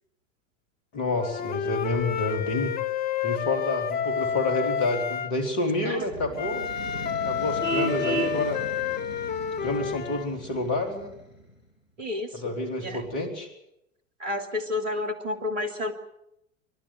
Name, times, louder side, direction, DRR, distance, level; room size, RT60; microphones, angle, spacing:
voice 1, 0.9-2.7 3.2-6.6 7.2-8.6 9.6-11.1 12.3-13.5, left 2 dB, 50° left, 5 dB, 4.3 m, -28 dB
Wind instrument woodwind instrument, 1.2-5.3 6.4-10.3, left 8 dB, 25° left, 0.8 m, -29 dB
sound 1, 5.8-11.7, equal, 90° left, 4.3 m, -41 dB
Vehicle horn car horn honking, 7.6-8.4, right 4 dB, 10° right, 4.0 m, -28 dB
voice 2, 12.0-12.5 12.8-13.1 14.2-15.9, left 2 dB, 70° right, 7 dB, 3.1 m, -30 dB
28.5 x 12.5 x 9.6 m, 0.83 s
figure-of-eight pair, 85°, 39 cm